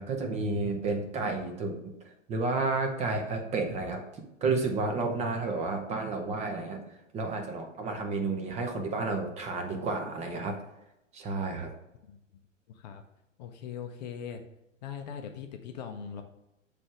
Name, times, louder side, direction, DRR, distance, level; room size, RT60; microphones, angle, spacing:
voice 1, 0.0-1.9 2.3-4.0 4.4-6.8 7.1-10.6 11.1-11.7, right 3 dB, 20° right, 4 dB, 0.7 m, -31 dB
voice 2, 12.7-13.0 13.4-14.4 14.8-16.2, left 7 dB, 35° left, 5 dB, 0.6 m, -40 dB
7.2 x 3.4 x 4.7 m, 0.89 s
figure-of-eight pair, 105°, 38 cm